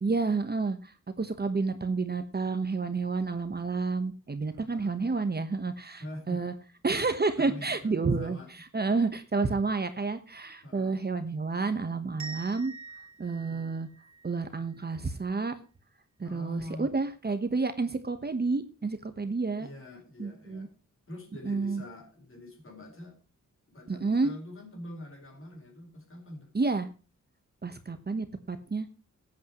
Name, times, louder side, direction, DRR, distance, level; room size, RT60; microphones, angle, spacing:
voice 1, 0.0-6.0 6.3-6.5 6.8-12.7 13.2-13.9 14.2-15.5 16.2-19.7 20.2-20.7 21.4-21.8 23.9-24.3 26.5-26.9 27.6-28.9, right 4 dB, 30° right, 9 dB, 1.1 m, -30 dB
voice 2, 4.5-5.0 6.0-6.5 7.4-8.5 10.6-11.0 13.4-13.7 16.2-16.9 19.6-20.7 21.1-23.2 23.7-26.5, left 1 dB, 45° left, 3 dB, 4.5 m, -44 dB
sound 1, 12.2-15.0, right 4 dB, 60° right, 2.6 m, -46 dB
19.5 x 8.5 x 3.0 m, 0.34 s
wide cardioid pair, 140°, 31 cm